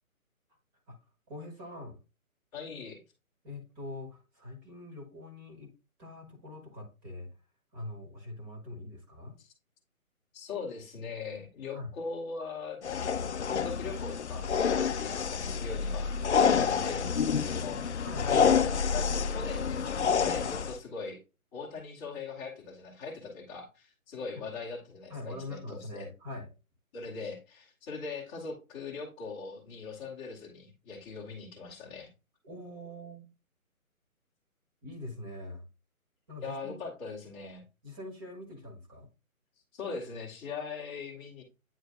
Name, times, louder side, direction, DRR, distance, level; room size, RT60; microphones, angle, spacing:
voice 1, 1.3-2.0 3.4-5.7 6.0-7.3 7.7-9.4 11.7-11.9 16.5-16.9 18.0-18.5 25.1-26.5 32.4-33.3 34.8-35.6 36.3-36.8 37.8-39.1, left 2 dB, 15° right, 1 dB, 1.3 m, -43 dB
voice 2, 2.5-3.0 9.4-9.5 10.3-16.1 16.8-21.2 21.5-26.1 26.9-32.1 36.4-37.6 39.7-41.4, left 4 dB, 10° left, -4 dB, 1.0 m, -41 dB
sound 1, 12.8-20.8, left 6 dB, 55° left, 0.5 m, -28 dB
9.1 x 3.1 x 3.6 m, 0.29 s
figure-of-eight pair, 150°, 43 cm